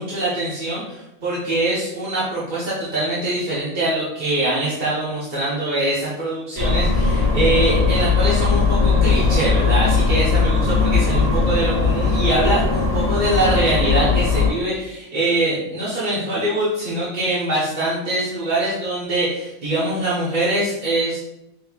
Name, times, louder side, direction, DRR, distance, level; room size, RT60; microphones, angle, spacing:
voice 1, 0.0-21.2, right 1 dB, 40° right, -9 dB, 1.0 m, -23 dB
sound 1, 6.6-14.5, left 4 dB, 15° left, 1.1 m, -18 dB
5.3 x 3.4 x 2.3 m, 0.90 s
omnidirectional pair, 1.5 m